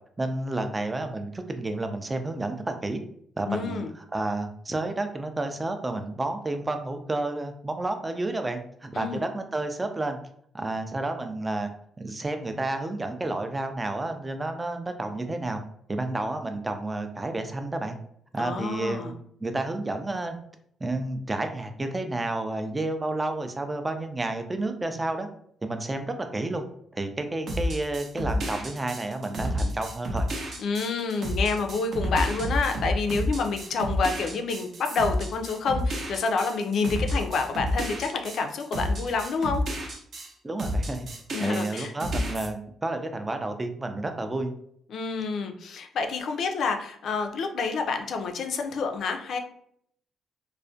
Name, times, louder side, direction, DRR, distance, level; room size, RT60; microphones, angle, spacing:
voice 1, 0.2-3.0 3.4-10.2 10.5-11.7 12.0-15.6 15.9-18.0 18.3-19.1 19.4-20.4 20.8-25.3 25.6-26.6 26.9-30.3 40.4-41.1 41.4-44.5, right 2 dB, 20° right, 6 dB, 0.3 m, -30 dB
voice 2, 3.5-3.9 8.9-9.2 18.4-19.1 30.6-39.6 41.3-41.9 44.9-49.4, left 4 dB, 65° left, 5 dB, 0.3 m, -28 dB
sound 1, 27.5-40.3 40.6-42.5, equal, 55° right, 0.6 m, -30 dB
2.3 x 2.1 x 2.5 m, 0.66 s
cardioid pair, 90°, 0 cm